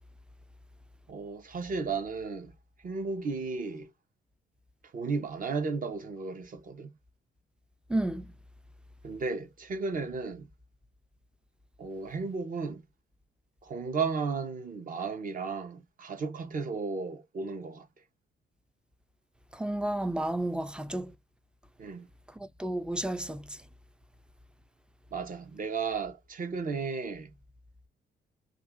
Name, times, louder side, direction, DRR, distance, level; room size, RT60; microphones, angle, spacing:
voice 1, 1.1-2.5 2.8-3.9 4.9-6.9 9.0-10.5 11.8-12.8 13.6-17.9 21.8-22.1 25.1-27.3, right 4 dB, 45° right, 0.9 m, -34 dB
voice 2, 7.9-8.3 19.5-21.1 22.4-23.6, right 1 dB, 5° right, 0.4 m, -32 dB
2.6 x 2.4 x 3.6 m
cardioid pair, 90°, 20 cm